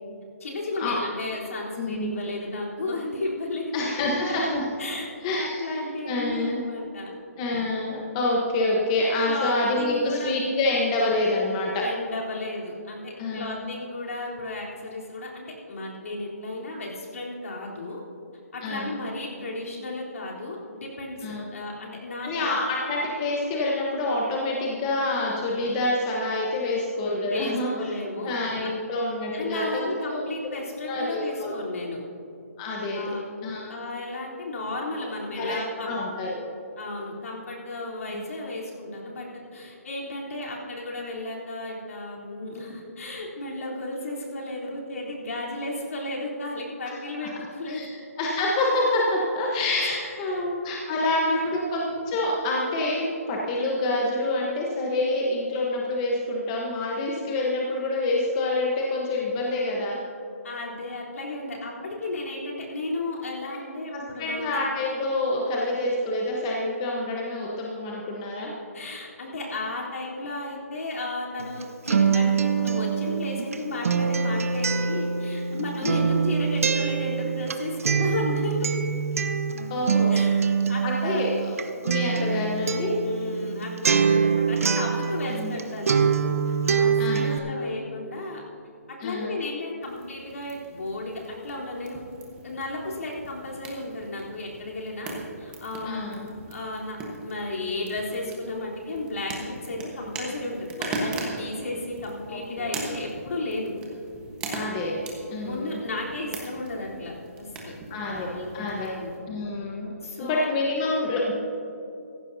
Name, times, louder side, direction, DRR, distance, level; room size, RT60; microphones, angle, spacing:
voice 1, 0.4-4.5 4.8-7.1 9.3-10.3 11.8-18.0 18.5-22.5 27.2-28.4 28.6-28.7 29.3-32.0 32.9-33.2 33.7-35.9 36.8-47.8 49.8-50.4 50.9-51.0 51.3-51.5 60.4-64.5 68.7-78.7 80.1-81.2 83.0-86.1 86.5-88.4 89.0-92.0 92.4-96.0 96.5-97.0 97.2-103.7 105.4-107.7 108.1-108.5 108.8-109.2 110.0-110.5, left 2 dB, 60° left, -4 dB, 3.6 m, -34 dB
voice 2, 1.7-2.1 3.7-4.6 5.2-6.6 7.4-11.8 13.2-13.7 18.6-19.0 21.2-21.4 22.2-27.7 28.2-30.3 30.8-31.5 32.6-33.1 33.4-33.7 35.4-36.4 38.1-38.2 47.2-47.3 47.7-47.9 48.2-60.0 63.9-68.5 75.8-76.0 79.7-80.1 80.8-81.5 81.8-82.9 85.3-85.5 87.0-87.6 89.0-89.4 95.8-96.3 102.3-102.7 104.5-105.0 105.3-105.8 107.9-108.9 109.3-109.9 110.2-111.3, left 2 dB, 20° left, -2 dB, 1.1 m, -27 dB
Acoustic guitar, 71.4-85.6 85.9-87.4, right 6 dB, 65° right, 1.0 m, -24 dB
sound 1, 89.8-109.2, right 2 dB, 10° right, 1.3 m, -39 dB
17.0 x 15.0 x 2.8 m, 2.6 s
hypercardioid pair, 170°, 8 cm